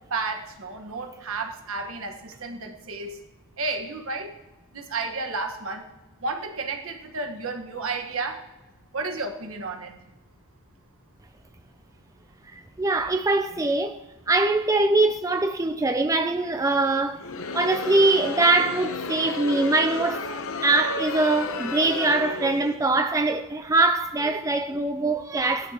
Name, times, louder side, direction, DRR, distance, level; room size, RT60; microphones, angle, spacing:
voice 1, 0.1-3.2 3.6-4.3 4.7-5.9 6.2-8.4 8.9-10.0, right 3 dB, 65° right, 1.4 m, -32 dB
voice 2, 12.5-14.0 14.3-17.2 17.5-25.7, right 2 dB, 15° right, 0.4 m, -23 dB
Crowd, 17.1-22.8, left 4 dB, 65° left, 0.8 m, -32 dB
17.5 x 11.5 x 3.0 m
head